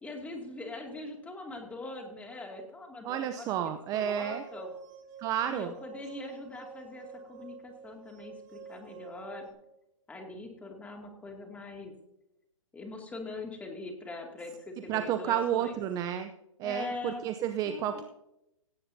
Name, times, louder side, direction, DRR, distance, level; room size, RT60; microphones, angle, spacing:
voice 1, 0.0-4.7 5.5-9.5 10.1-11.9 12.7-15.7 16.6-17.2 17.7-18.0, left 2 dB, 10° left, 2 dB, 2.4 m, -42 dB
voice 2, 3.0-4.4 5.2-5.7 14.9-16.3 16.6-18.0, right 10 dB, 20° right, 8 dB, 0.6 m, -31 dB
sound 1, 4.1-9.5, right 6 dB, 35° right, 2.6 m, -48 dB
17.5 x 16.0 x 2.7 m, 0.87 s
hypercardioid pair, 145°, 17 cm